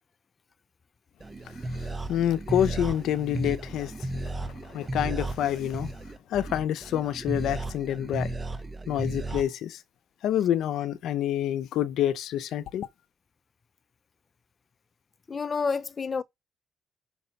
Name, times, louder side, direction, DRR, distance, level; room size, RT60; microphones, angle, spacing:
sound 1, 1.2-9.4, right 2 dB, 25° right, 1.0 m, -34 dB
voice 1, 1.8-4.2 4.7-5.9 6.3-8.3 8.9-9.8 10.2-12.9, left 11 dB, 80° left, 0.6 m, -27 dB
voice 2, 15.3-16.2, left 5 dB, 35° left, 0.5 m, -29 dB
5.9 x 5.3 x 5.7 m
cardioid pair, 90°, 0 cm